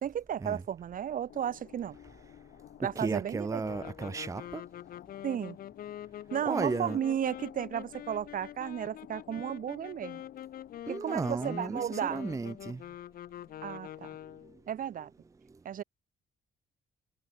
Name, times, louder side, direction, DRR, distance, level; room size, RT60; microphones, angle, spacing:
voice 1, 0.0-2.0 2.8-3.6 5.2-5.6 6.3-10.2 10.9-12.2 13.6-14.1 14.7-15.1 15.6-15.8, right 9 dB, 55° right, 1.1 m, -34 dB
sound 1, 1.3-10.8, left 12 dB, 75° left, 7.0 m, -55 dB
voice 2, 2.8-4.6 6.4-7.0 10.9-12.8, right 4 dB, 20° right, 0.6 m, -34 dB
sound 2, 3.6-14.6, left 11 dB, 60° left, 0.7 m, -45 dB
cardioid pair, 95°, 17 cm